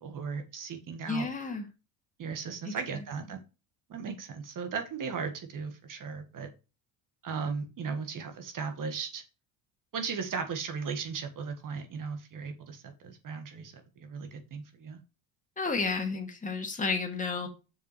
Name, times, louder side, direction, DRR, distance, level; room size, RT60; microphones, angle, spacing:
voice 1, 0.0-1.3 2.2-3.4 3.9-6.5 7.2-9.2 9.9-15.0, right 5 dB, 45° right, 6 dB, 1.7 m, -37 dB
voice 2, 1.1-1.7 2.6-3.0 15.6-17.5, left 4 dB, 20° left, 3 dB, 2.1 m, -32 dB
6.7 x 5.5 x 4.4 m, 0.30 s
supercardioid pair, 95°, 43 cm